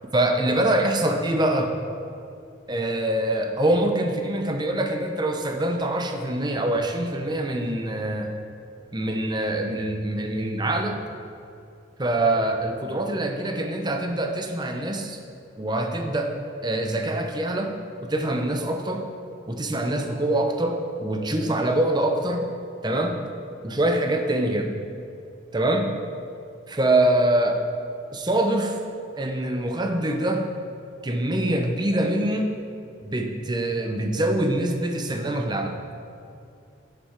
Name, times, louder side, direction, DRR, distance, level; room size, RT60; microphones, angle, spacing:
voice 1, 0.1-1.8 2.7-8.3 8.9-11.0 12.0-15.2 15.6-16.3 16.6-17.7 18.0-19.1 19.5-22.5 22.8-23.2 23.6-24.7 25.5-25.9 26.7-27.6 28.1-28.8 29.2-30.5 31.0-32.6 33.0-35.8, right 1 dB, 20° right, 4 dB, 0.7 m, -24 dB
10.5 x 7.9 x 4.4 m, 2.5 s
head